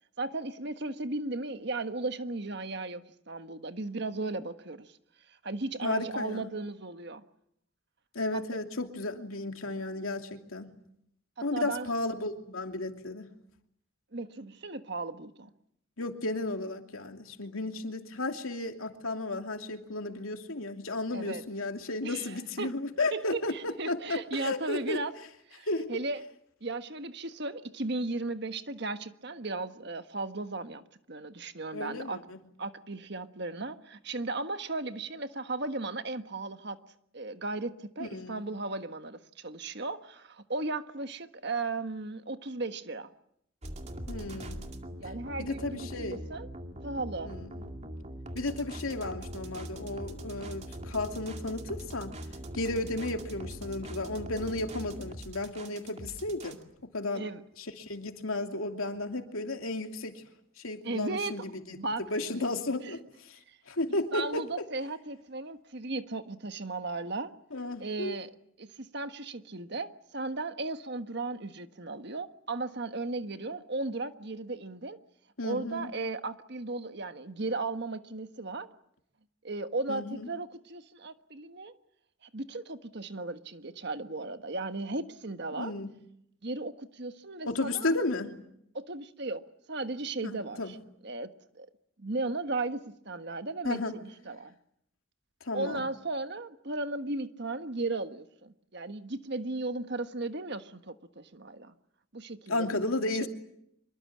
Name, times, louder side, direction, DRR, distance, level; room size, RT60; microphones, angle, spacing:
voice 1, 0.2-5.0 5.4-7.2 8.3-8.4 11.4-11.9 14.1-15.5 21.1-21.4 22.0-22.8 23.1-25.1 25.5-26.2 26.6-30.8 31.1-32.2 32.6-36.8 37.1-43.1 45.0-46.5 46.8-47.3 57.1-57.4 60.8-61.4 61.8-62.0 62.8-62.9 63.5-63.6 64.1-67.3 67.8-68.3 68.6-75.0 75.4-78.7 79.4-81.7 82.2-85.7 86.4-87.9 88.7-89.4 89.7-90.8 91.0-91.3 91.5-91.7 92.0-94.5 95.5-101.7 102.1-102.7 103.2-103.3, right 2 dB, 55° right, 1.4 m, -36 dB
voice 2, 5.8-6.5 8.1-10.7 11.4-13.3 16.0-25.0 25.7-25.9 31.7-32.4 38.0-38.4 44.1-44.7 45.4-46.2 47.2-47.5 48.3-52.2 52.5-57.3 57.6-60.2 60.6-61.4 61.7-61.8 62.1-63.4 63.7-64.4 67.5-68.2 75.4-75.9 79.9-80.3 85.6-85.9 87.5-88.4 90.2-90.7 93.6-93.9 95.4-95.8 102.5-103.3, left 2 dB, 90° left, 2.8 m, -33 dB
sound 1, 43.6-56.6, right 1 dB, 30° right, 2.3 m, -42 dB
26.0 x 23.0 x 8.6 m
head